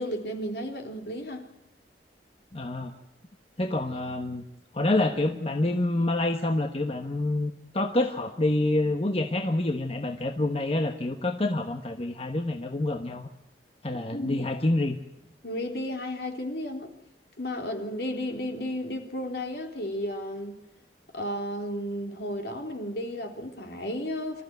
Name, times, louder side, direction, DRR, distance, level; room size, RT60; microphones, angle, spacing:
voice 1, 0.0-1.5 14.1-14.6 15.4-16.9 17.4-20.6 21.1-24.4, left 1 dB, 65° left, 3.5 m, -33 dB
voice 2, 2.5-2.9 3.6-4.5 4.7-13.3 13.8-15.0, left 2 dB, 35° left, 1.2 m, -27 dB
25.0 x 14.5 x 9.4 m
head